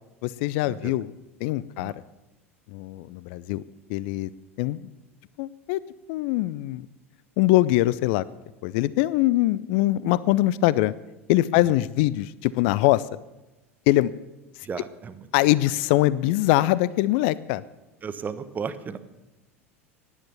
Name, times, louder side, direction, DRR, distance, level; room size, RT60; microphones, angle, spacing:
voice 1, 0.2-1.1 1.4-1.9 2.7-3.6 3.9-4.3 4.6-4.9 5.4-5.8 6.1-6.9 7.4-8.3 8.6-10.9 11.3-13.0 13.9-14.1 15.3-17.6, left 16 dB, 50° left, 20 dB, 0.4 m, -22 dB
voice 2, 14.6-15.3 18.0-19.0, right 6 dB, 25° right, 12 dB, 1.1 m, -35 dB
16.0 x 10.5 x 7.0 m, 1.0 s
figure-of-eight pair, 80°, 8 cm